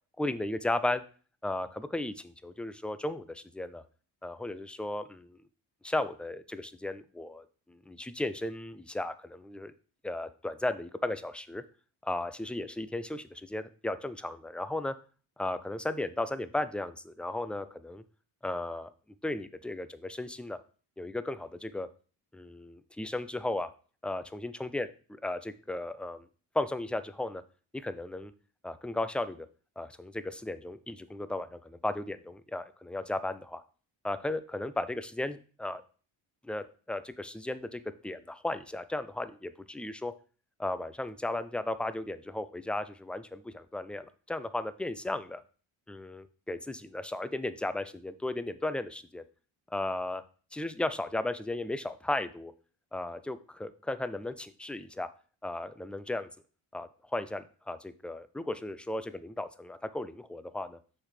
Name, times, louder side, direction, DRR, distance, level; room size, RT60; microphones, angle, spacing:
voice 1, 0.2-1.0 1.4-3.8 4.2-5.4 5.8-9.7 10.0-11.6 12.0-14.9 15.4-18.0 18.4-18.9 19.2-20.6 21.0-21.9 22.3-23.7 24.0-26.3 26.5-27.4 27.7-28.3 28.6-29.5 29.8-33.6 34.0-35.8 36.4-40.1 40.6-45.4 45.9-49.2 49.7-50.2 50.5-52.5 52.9-55.1 55.4-56.3 56.7-60.8, left 2 dB, ahead, 13 dB, 0.4 m, -35 dB
6.1 x 4.1 x 4.9 m, 0.39 s
supercardioid pair, 60°, 49 cm